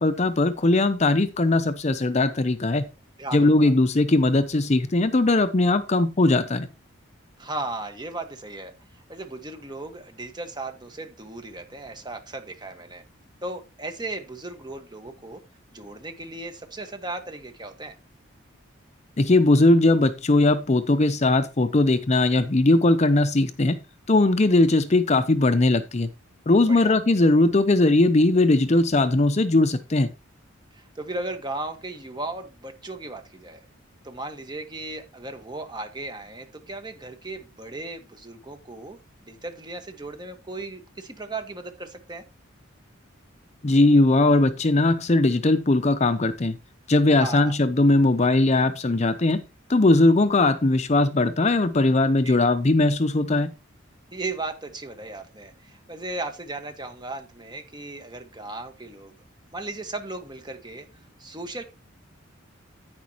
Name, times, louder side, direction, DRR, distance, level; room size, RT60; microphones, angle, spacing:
voice 1, 0.0-2.9 3.3-6.7 19.2-23.8 24.1-26.1 26.5-30.1 43.6-46.6 46.9-49.4 49.7-53.5, left 2 dB, 35° left, 0.6 m, -19 dB
voice 2, 3.2-3.7 7.4-13.0 13.4-15.4 15.7-17.9 26.7-26.9 30.7-33.6 34.0-39.0 39.2-42.2 47.2-47.6 52.2-52.4 54.1-59.1 59.5-60.9 61.2-61.6, right 2 dB, 20° right, 1.4 m, -36 dB
10.5 x 9.4 x 2.9 m
head